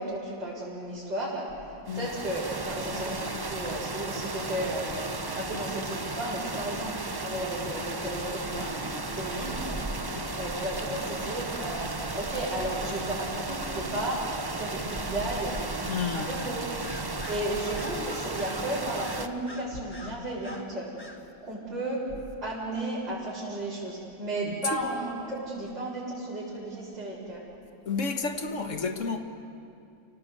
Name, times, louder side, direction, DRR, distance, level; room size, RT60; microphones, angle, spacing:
voice 1, 0.0-1.5 1.9-5.0 5.3-8.8 9.1-9.9 10.3-14.2 14.5-15.6 16.1-16.7 17.3-20.9 21.4-22.1 22.4-27.4, right 1 dB, 70° right, -11 dB, 6.2 m, -34 dB
sound 1, 1.9-19.3, right 2 dB, 30° right, 0.4 m, -34 dB
voice 2, 15.9-16.3 24.5-24.6 27.9-29.2, left 5 dB, 45° left, 6 dB, 1.8 m, -31 dB
Bird vocalization bird call bird song, 16.1-16.5 16.8-20.7 21.0-21.2, left 1 dB, 15° left, 1.6 m, -46 dB
30.0 x 18.0 x 8.1 m, 2.5 s
omnidirectional pair, 2.0 m